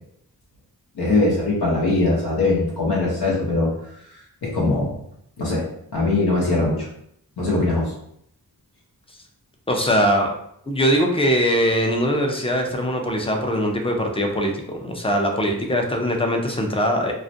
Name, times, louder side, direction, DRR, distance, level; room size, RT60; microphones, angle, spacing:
voice 1, 1.0-3.7 4.4-5.0 5.4-5.6 5.9-6.9 7.4-7.9, left 2 dB, 80° left, -4 dB, 0.8 m, -21 dB
voice 2, 9.7-10.3 10.7-17.1, equal, 15° left, 2 dB, 0.4 m, -21 dB
2.3 x 2.1 x 2.6 m, 0.71 s
wide cardioid pair, 55°, 39 cm